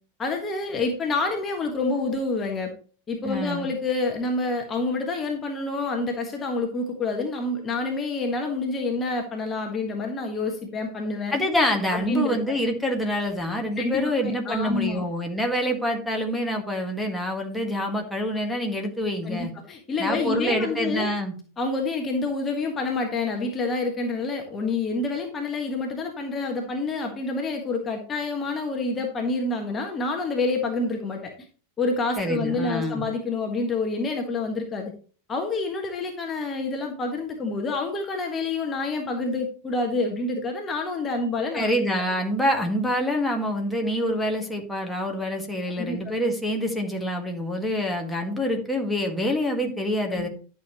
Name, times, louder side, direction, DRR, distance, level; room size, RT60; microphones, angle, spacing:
voice 1, 0.2-2.7 3.1-11.3 11.9-12.6 13.8-15.0 19.2-21.1 21.6-31.3 31.8-34.9 35.3-41.7 45.8-46.0 50.1-50.3, left 3 dB, 20° left, 2 dB, 1.6 m, -28 dB
voice 2, 3.2-3.7 11.3-19.5 20.0-21.3 32.2-33.0 41.5-50.3, equal, 5° left, 1 dB, 1.8 m, -26 dB
12.0 x 6.5 x 3.1 m, 0.40 s
figure-of-eight pair, 90°, 0 cm